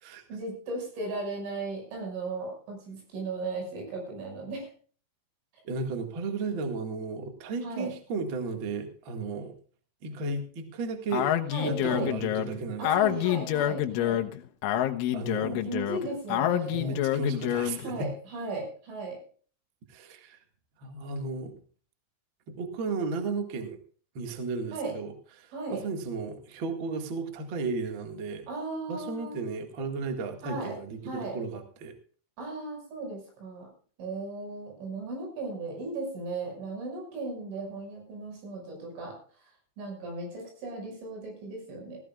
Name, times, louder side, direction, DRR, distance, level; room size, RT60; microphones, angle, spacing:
voice 1, 0.3-4.7 7.6-7.9 11.5-12.1 12.8-14.3 15.4-17.0 17.8-19.2 24.7-25.0 25.5-25.8 28.5-29.5 30.4-30.8 31.0-31.4 32.4-33.7 34.0-39.2 39.8-42.0, right 3 dB, 85° right, 2 dB, 8.4 m, -36 dB
voice 2, 5.6-9.5 10.0-11.3 11.6-13.3 15.1-15.6 16.6-18.1 19.9-20.4 20.8-21.5 22.5-23.8 24.1-25.1 25.4-28.5 28.9-31.9, right 3 dB, 50° right, 5 dB, 1.5 m, -34 dB
Speech, 11.1-17.9, left 11 dB, 85° left, 3.5 m, -27 dB
18.5 x 15.0 x 2.4 m, 0.42 s
omnidirectional pair, 5.4 m